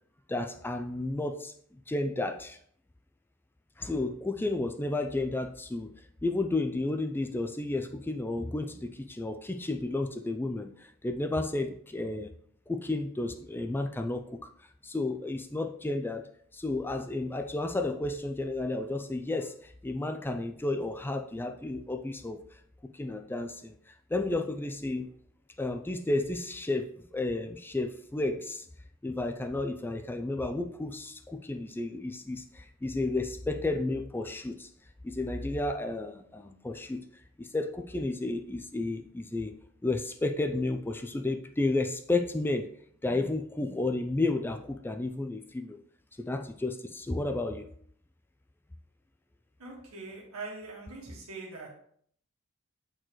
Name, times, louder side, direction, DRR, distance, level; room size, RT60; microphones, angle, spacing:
voice 1, 0.3-1.5 1.9-2.6 3.8-5.9 6.2-12.3 12.7-14.5 14.8-16.3 16.5-22.4 22.9-23.7 24.1-25.1 25.6-28.7 29.0-34.7 35.0-37.0 37.4-39.5 39.8-42.7 43.0-45.8 46.2-47.7, left 2 dB, 10° left, 6 dB, 0.3 m, -32 dB
voice 2, 49.6-51.7, right 3 dB, 85° right, -3 dB, 1.6 m, -42 dB
7.8 x 4.5 x 3.0 m, 0.62 s
head